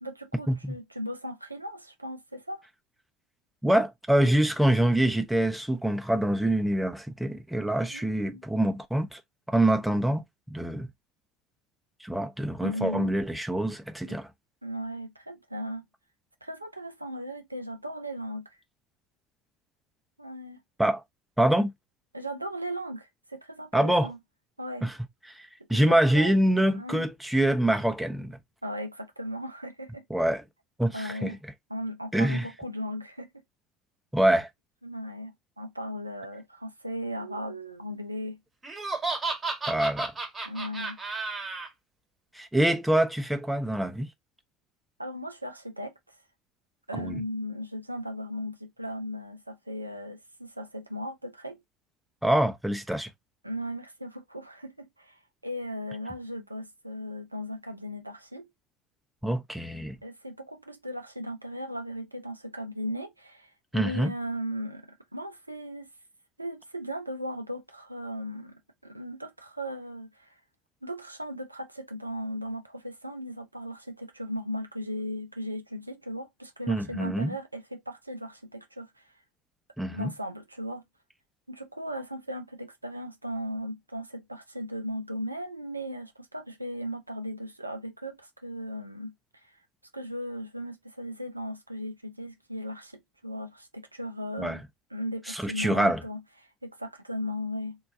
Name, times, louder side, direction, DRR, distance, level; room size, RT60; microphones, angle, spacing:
voice 1, 0.0-2.7 7.9-8.4 12.6-13.1 14.1-14.2 14.6-15.8 16.4-18.5 20.2-20.6 22.1-24.2 24.6-24.9 25.7-26.4 26.7-27.1 28.6-30.0 30.9-31.4 31.7-33.3 34.8-38.4 40.4-41.0 45.0-46.2 46.9-51.6 53.4-58.5 60.0-65.9 66.4-70.4 70.8-79.1 79.9-80.8 81.5-89.6 89.9-94.6 94.9-97.8, equal, 90° right, 0.4 m, -37 dB
voice 2, 3.6-9.2 9.5-10.2 10.5-10.9 12.0-14.3 20.8-21.0 21.4-21.7 23.7-24.1 24.8-24.9 25.3-28.4 30.1-30.4 30.8-31.4 32.1-32.5 34.1-34.5 39.7-40.1 42.3-44.1 46.9-47.2 52.2-53.1 59.2-60.0 63.7-64.1 76.7-77.3 79.8-80.1 94.4-94.6 95.3-96.0, right 1 dB, 5° right, 0.6 m, -25 dB
Laughter, 38.6-41.7, right 3 dB, 20° right, 1.2 m, -32 dB
3.7 x 2.3 x 2.5 m
figure-of-eight pair, 65°, 0 cm